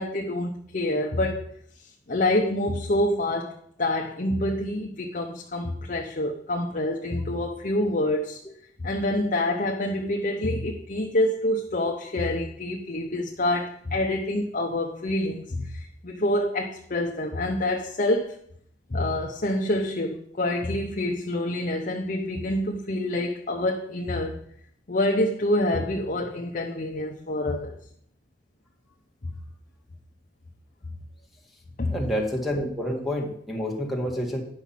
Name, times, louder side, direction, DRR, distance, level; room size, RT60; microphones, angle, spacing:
voice 1, 0.0-1.5 2.1-8.4 8.8-18.4 18.9-24.4 24.9-27.7 31.8-32.0, left 1 dB, 45° left, 1 dB, 0.8 m, -27 dB
voice 2, 31.9-34.4, equal, ahead, 1 dB, 1.8 m, -28 dB
9.9 x 6.1 x 5.8 m, 0.65 s
head